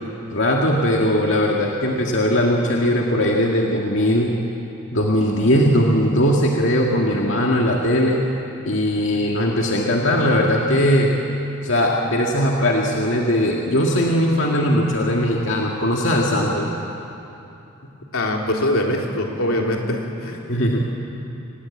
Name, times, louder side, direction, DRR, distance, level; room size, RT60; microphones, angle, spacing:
voice 1, 0.3-4.3 4.9-8.2 8.6-11.1 11.6-16.7 20.5-20.9, equal, 65° left, -1 dB, 2.1 m, -19 dB
voice 2, 18.1-20.4, left 1 dB, 90° left, 0 dB, 3.5 m, -23 dB
26.0 x 20.0 x 8.6 m, 2.8 s
head